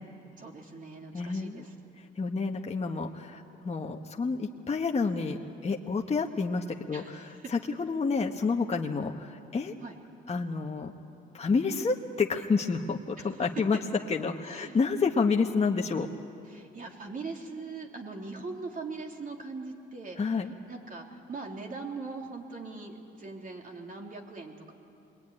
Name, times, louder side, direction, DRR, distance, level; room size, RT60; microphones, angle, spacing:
voice 1, 0.4-1.7 6.9-7.5 9.8-9.9 13.2-13.4 14.4-14.8 16.4-20.4 20.7-24.7, right 3 dB, 45° right, 1 dB, 3.6 m, -41 dB
voice 2, 1.1-1.6 2.2-9.7 10.3-10.9 11.3-13.8 14.1-16.1 20.2-20.5, left 4 dB, 30° left, 1 dB, 1.3 m, -29 dB
25.5 x 22.0 x 9.9 m, 2.6 s
cardioid pair, 90°, 20 cm